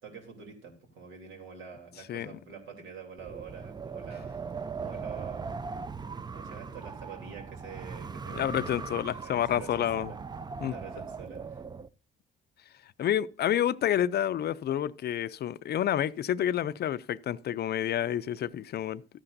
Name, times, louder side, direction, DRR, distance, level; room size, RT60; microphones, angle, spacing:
voice 1, 0.0-4.4 4.8-5.5 6.3-8.6 9.2-10.2 10.7-11.6, right 6 dB, 85° right, 3.0 m, -46 dB
Wind, 3.2-11.9, right 5 dB, 20° right, 0.4 m, -39 dB
voice 2, 8.3-10.1 10.6-10.7 13.0-19.0, left 10 dB, 55° left, 0.4 m, -29 dB
13.0 x 9.8 x 2.6 m
cardioid pair, 90°, 20 cm